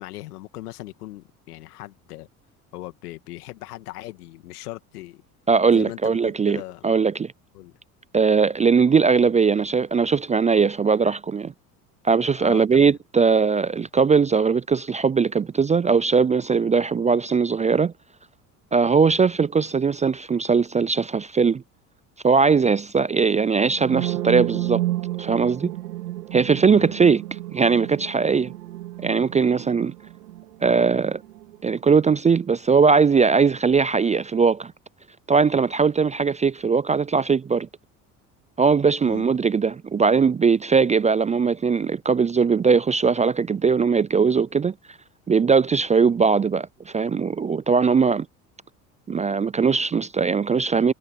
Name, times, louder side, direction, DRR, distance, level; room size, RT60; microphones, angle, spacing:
voice 1, 0.0-2.3 2.7-5.2 5.7-6.8 7.5-7.7 12.4-13.0 26.7-26.9 39.0-39.3, left 17 dB, 80° left, 2.1 m, -38 dB
voice 2, 5.5-7.3 8.1-11.5 12.0-17.9 18.7-21.6 22.2-24.8 25.2-25.7 26.3-27.2 27.5-28.5 29.0-29.9 30.6-31.2 31.6-34.7 35.3-37.7 38.6-44.7 45.3-48.3 49.1-50.9, right 5 dB, 15° right, 0.4 m, -20 dB
sound 1, 23.7-31.6, right 15 dB, 85° right, 3.5 m, -31 dB
hypercardioid pair, 65°, 45 cm